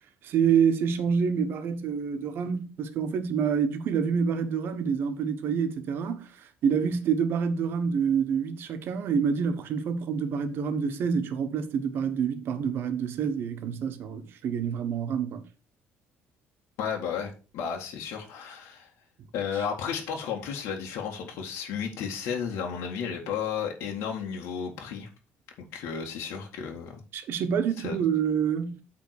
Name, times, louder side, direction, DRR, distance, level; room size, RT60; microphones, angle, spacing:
voice 1, 0.2-6.3 6.6-15.4 27.1-28.8, right 7 dB, 55° right, 1.3 m, -27 dB
voice 2, 16.8-18.9 19.3-25.1 25.7-27.0 27.8-28.0, left 7 dB, 80° left, 2.0 m, -33 dB
8.6 x 3.8 x 6.6 m
cardioid pair, 145°, 4 cm